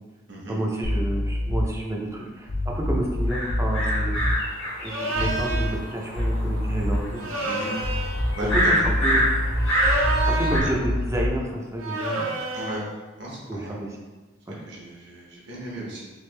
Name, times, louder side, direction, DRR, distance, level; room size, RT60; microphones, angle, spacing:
voice 1, 0.5-4.2 4.8-7.4 8.5-9.2 10.3-12.3 13.5-13.9 14.5-14.6, right 1 dB, 15° right, -1 dB, 0.5 m, -30 dB
sound 1, 0.8-1.8 2.4-4.4 5.1-5.9 6.2-7.1 7.8-11.4, left 1 dB, 60° left, 0.7 m, -26 dB
sound 2, 3.3-10.6, equal, 80° left, 1.3 m, -27 dB
sound 3, 4.8-5.8 7.2-8.2 9.6-10.8 11.8-12.8, right 2 dB, 85° right, 0.7 m, -29 dB
voice 2, 8.4-8.7 9.0-9.3 10.6-10.7 12.5-12.8 13.2-13.8 14.5-16.0, equal, 60° right, -5 dB, 1.1 m, -35 dB
3.4 x 3.3 x 3.3 m, 1.2 s
head